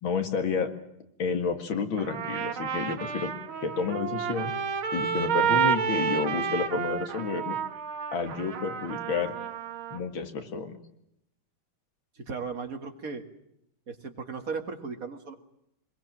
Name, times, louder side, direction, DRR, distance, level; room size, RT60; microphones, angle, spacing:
voice 1, 0.0-0.7 1.2-3.3 3.6-4.5 4.9-7.6 8.1-9.3 9.9-10.8, left 5 dB, 75° left, 7 dB, 2.8 m, -30 dB
Trumpet, 2.0-10.0, right 7 dB, 80° right, 2.2 m, -30 dB
voice 2, 12.2-13.2 13.9-15.3, right 5 dB, 45° right, 5 dB, 2.5 m, -36 dB
24.0 x 22.0 x 7.6 m, 0.78 s
omnidirectional pair, 2.2 m